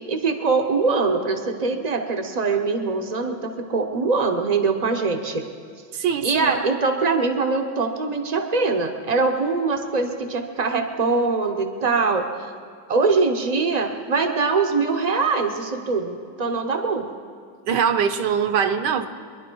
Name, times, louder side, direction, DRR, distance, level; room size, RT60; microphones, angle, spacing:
voice 1, 0.1-5.4 6.2-12.3 12.9-17.1, right 4 dB, 45° right, 5 dB, 0.5 m, -23 dB
voice 2, 5.9-6.6 17.7-19.1, right 7 dB, 70° right, 9 dB, 1.3 m, -22 dB
23.0 x 11.0 x 4.6 m, 2.1 s
omnidirectional pair, 2.0 m